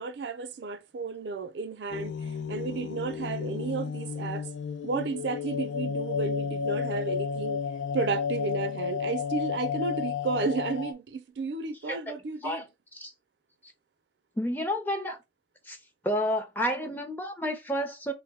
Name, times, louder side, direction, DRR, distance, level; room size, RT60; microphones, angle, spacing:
voice 1, 0.0-2.1 2.5-4.4 4.8-7.6 7.9-12.7, right 4 dB, 70° right, 0.4 m, -32 dB
sound 1, 1.9-10.9, left 6 dB, 85° left, 0.4 m, -32 dB
voice 2, 14.4-15.2 15.7-15.8 16.0-18.1, equal, 10° left, 0.5 m, -30 dB
3.0 x 2.1 x 3.3 m
head